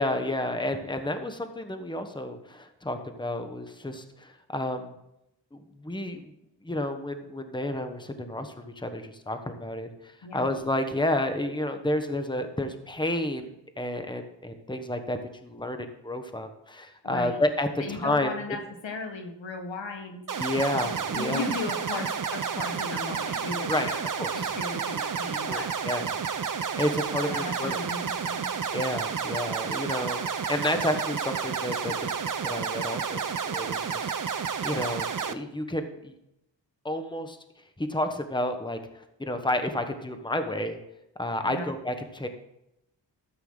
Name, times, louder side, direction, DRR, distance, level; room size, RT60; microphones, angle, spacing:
voice 1, 0.0-5.0 5.5-6.3 6.6-13.5 13.8-18.3 20.4-21.4 23.7-24.6 25.4-26.2 26.8-27.8 28.7-32.1 32.4-36.1 36.8-37.4 37.8-40.8 41.2-42.3, left 1 dB, 10° left, 7 dB, 1.2 m, -31 dB
voice 2, 17.0-17.4 17.8-20.2 20.8-24.0 24.3-25.7 27.3-28.5 41.4-41.7, left 3 dB, 80° left, 4 dB, 1.8 m, -36 dB
sound 1, 20.3-35.3, right 6 dB, 45° right, 0.8 m, -31 dB
13.5 x 8.3 x 3.9 m, 0.84 s
cardioid pair, 50°, 45 cm